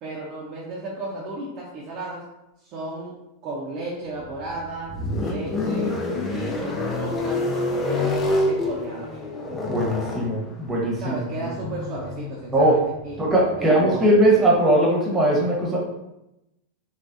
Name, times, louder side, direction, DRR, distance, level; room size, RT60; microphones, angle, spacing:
voice 1, 0.0-2.2 2.6-3.1 3.4-6.0 6.3-9.2 11.0-13.2 13.6-14.1, right 2 dB, 35° right, -4 dB, 0.7 m, -34 dB
sound 1, 4.2-14.4, left 2 dB, 20° left, 0.6 m, -28 dB
voice 2, 9.7-11.5 12.5-12.8 13.2-15.8, right 1 dB, 20° right, -3 dB, 1.1 m, -20 dB
3.4 x 3.3 x 2.5 m, 0.90 s
figure-of-eight pair, 90°, 0 cm